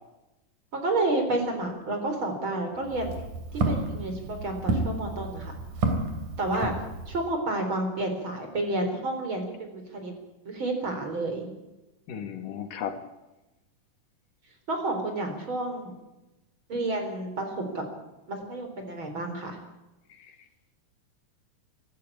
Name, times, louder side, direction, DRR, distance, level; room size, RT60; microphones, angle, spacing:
voice 1, 0.7-3.2 3.7-5.5 6.4-6.7 7.1-10.1 10.4-11.5 14.7-15.9 16.7-17.8 18.3-19.6, right 2 dB, 40° right, 5 dB, 4.7 m, -30 dB
Walk footsteps, 2.8-7.3, right 2 dB, 70° right, 4.2 m, -31 dB
voice 2, 12.1-13.0 20.1-20.3, left 8 dB, 85° left, 7 dB, 3.5 m, -35 dB
25.0 x 13.0 x 8.6 m, 1.0 s
omnidirectional pair, 3.7 m